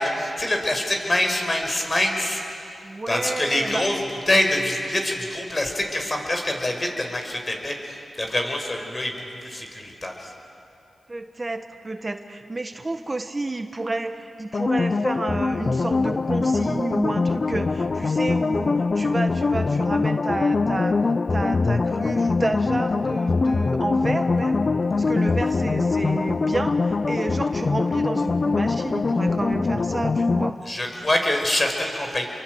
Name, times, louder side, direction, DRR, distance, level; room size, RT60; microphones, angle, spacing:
voice 1, 0.0-2.4 3.1-4.0 4.3-10.3 30.7-32.2, left 1 dB, 35° left, 3 dB, 5.5 m, -25 dB
voice 2, 2.8-4.0 11.1-21.0 21.3-24.7 25.0-30.6, right 2 dB, 35° right, 7 dB, 1.4 m, -30 dB
sound 1, 14.5-30.5, left 3 dB, 50° left, 0.7 m, -23 dB
29.0 x 23.5 x 8.0 m, 2.7 s
cardioid pair, 45°, 0 cm